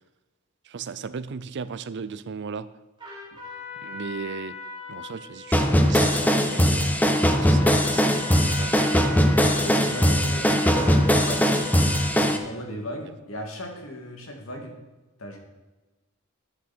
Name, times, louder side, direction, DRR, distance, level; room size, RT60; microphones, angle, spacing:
voice 1, 0.7-2.7 3.8-4.6 4.9-7.0 7.4-8.8, right 5 dB, 55° right, 0.5 m, -36 dB
Trumpet, 3.0-12.5, left 2 dB, 25° right, 3.6 m, -39 dB
sound 1, 5.5-12.4, equal, 10° left, 0.9 m, -20 dB
voice 2, 9.4-11.5 11.8-14.7 15.2-15.4, equal, 70° left, 2.5 m, -37 dB
13.5 x 9.6 x 4.4 m
head